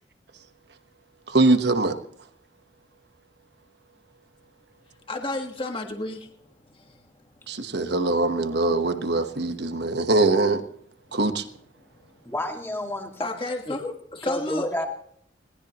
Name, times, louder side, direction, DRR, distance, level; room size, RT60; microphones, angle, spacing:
voice 1, 1.3-1.9 7.5-10.6 11.1-11.4, right 2 dB, 60° right, 1.2 m, -22 dB
voice 2, 5.1-6.3 13.2-14.7, left 2 dB, 30° left, 1.6 m, -31 dB
voice 3, 12.2-13.3 13.7-13.8 14.3-14.9, left 1 dB, 15° left, 2.1 m, -30 dB
21.5 x 19.0 x 3.0 m
head